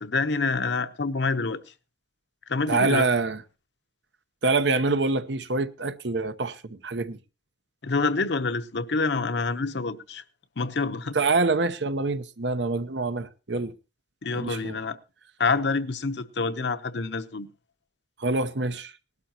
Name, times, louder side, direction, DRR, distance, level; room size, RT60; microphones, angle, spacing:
voice 1, 0.0-1.6 2.5-3.1 7.8-10.2 10.6-11.2 14.2-15.0 15.4-17.5, left 4 dB, 75° left, 0.9 m, -27 dB
voice 2, 2.7-3.4 4.4-7.2 11.1-13.7 14.3-14.8 18.2-18.9, right 3 dB, 80° right, 0.9 m, -25 dB
19.0 x 12.0 x 2.9 m
head